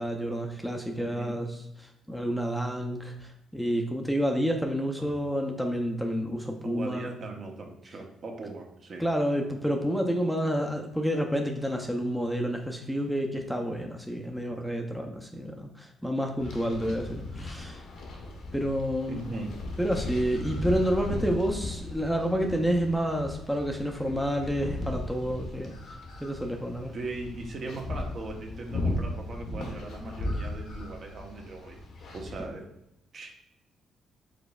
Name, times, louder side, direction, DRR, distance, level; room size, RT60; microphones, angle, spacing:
voice 1, 0.0-1.5 1.8-7.1 9.0-17.8 18.5-19.2 19.8-25.7 26.2-26.9, equal, ahead, 2 dB, 0.5 m, -29 dB
voice 2, 1.0-1.4 5.0-5.1 6.6-9.0 19.1-19.5 26.9-31.8 32.1-32.7 33.1-33.3, right 2 dB, 50° right, 2 dB, 0.9 m, -39 dB
sound 1, 16.4-32.4, left 2 dB, 75° left, 1.0 m, -37 dB
5.0 x 3.8 x 2.4 m, 0.85 s
cardioid pair, 90°, 0 cm